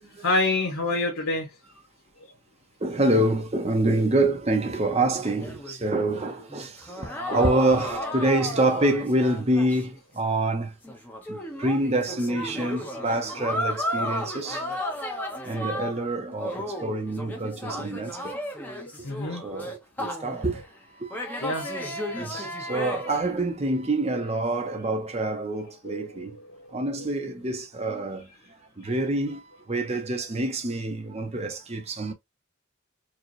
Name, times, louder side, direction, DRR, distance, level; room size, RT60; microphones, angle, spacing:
voice 1, 0.2-1.5 13.9-15.3 19.0-19.4 20.0-20.1 21.4-21.7 25.8-26.7, left 2 dB, 80° left, 1.4 m, -29 dB
voice 2, 2.8-10.7 11.3-14.6 15.4-18.3 19.3-20.6 21.0-21.4 22.2-26.4 26.7-28.3 28.8-32.1, right 2 dB, 30° right, 0.8 m, -26 dB
sound 1, 5.2-10.0 10.3-10.4 10.8-16.1 16.4-20.6 21.1-23.5, left 1 dB, 10° left, 0.8 m, -34 dB
4.7 x 2.3 x 3.1 m
head